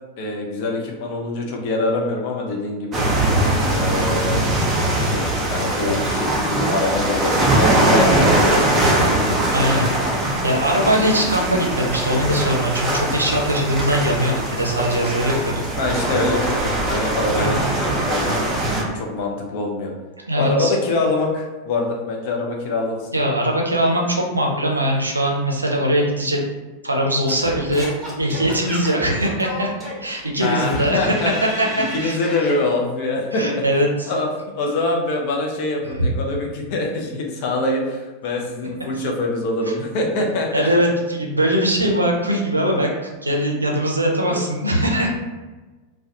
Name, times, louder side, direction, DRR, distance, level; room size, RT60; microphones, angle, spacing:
voice 1, 0.2-3.0 3.7-4.4 5.0-8.8 9.1-9.4 15.8-18.3 18.8-19.9 20.3-23.0 30.4-31.3 31.8-33.6 34.1-34.3 34.5-40.7 44.3-44.5, left 2 dB, 45° left, 0 dB, 0.5 m, -24 dB
sound 1, 2.9-18.8, right 1 dB, 20° right, 0.6 m, -21 dB
voice 2, 7.7-8.0 9.5-9.9 10.4-15.5 17.3-17.6 20.3-20.7 23.1-26.4 26.8-29.7 30.0-31.1 31.4-32.2 33.3-34.1 36.0-36.1 40.5-42.9 43.2-45.1, equal, 80° right, 0 dB, 0.4 m, -21 dB
Singing / Scratching (performance technique), 27.3-32.6, equal, 5° left, 0.9 m, -32 dB
2.3 x 2.2 x 2.7 m, 1.2 s
figure-of-eight pair, 90°, 0 cm